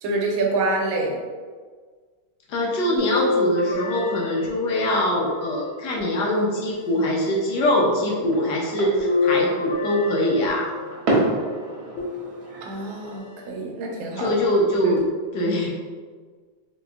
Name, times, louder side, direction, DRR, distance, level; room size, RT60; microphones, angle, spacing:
voice 1, 0.0-1.2 12.6-14.3 14.8-14.9, right 2 dB, 80° right, 0 dB, 1.4 m, -26 dB
voice 2, 2.5-10.7 14.2-15.0 15.3-15.7, left 1 dB, 70° left, -3 dB, 1.1 m, -23 dB
sound 1, 3.0-5.2 6.0-7.0 9.0-11.0 12.0-12.8 13.5-13.6 15.0-15.1, left 3 dB, 90° left, 1.5 m, -27 dB
sound 2, 7.5-13.2, right 2 dB, 60° right, 1.3 m, -30 dB
4.0 x 2.8 x 2.3 m, 1.5 s
omnidirectional pair, 2.2 m